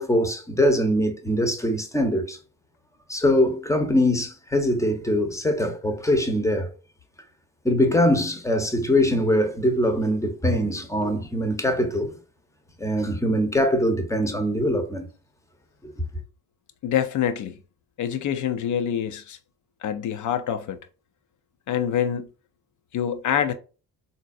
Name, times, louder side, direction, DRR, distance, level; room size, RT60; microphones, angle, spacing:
voice 1, 0.0-2.4 3.1-6.7 7.6-12.2 12.8-15.1 15.8-15.9, left 1 dB, 5° left, 0.8 m, -22 dB
voice 2, 16.8-17.5 18.0-19.4 19.8-20.8 21.7-22.3 22.9-23.5, left 9 dB, 45° left, 0.6 m, -26 dB
3.7 x 2.7 x 2.5 m
hypercardioid pair, 50°, 42 cm